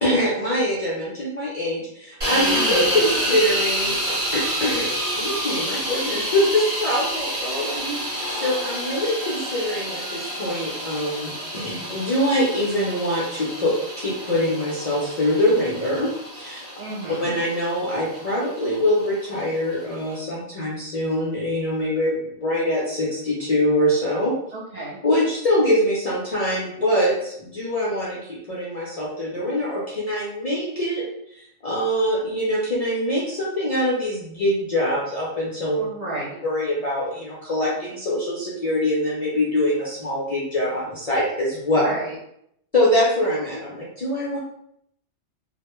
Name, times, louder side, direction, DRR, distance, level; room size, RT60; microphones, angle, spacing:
voice 1, 0.0-7.8 8.1-16.7 17.2-24.3 25.0-31.0 31.3-35.8 36.4-41.8 42.7-44.4, left 1 dB, 55° left, -6 dB, 0.4 m, -24 dB
sound 1, 2.2-20.1, right 1 dB, 30° right, 0.8 m, -28 dB
voice 2, 2.5-2.9 7.8-8.0 16.8-17.3 24.5-25.0 35.8-36.4 41.8-42.1, right 2 dB, 50° right, -6 dB, 0.5 m, -32 dB
2.3 x 2.1 x 2.9 m, 0.73 s
omnidirectional pair, 1.2 m